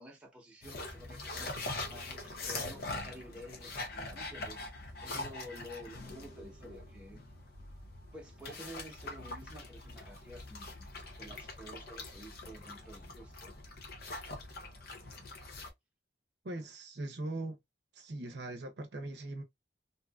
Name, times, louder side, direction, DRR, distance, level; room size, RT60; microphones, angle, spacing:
voice 1, 0.0-4.6 5.0-7.2 8.1-13.6, equal, 5° right, 0.8 m, -51 dB
sound 1, 0.6-15.7, left 2 dB, 60° left, 0.7 m, -43 dB
voice 2, 16.4-17.6 17.9-19.4, right 2 dB, 65° right, 0.6 m, -40 dB
2.7 x 2.4 x 2.3 m
head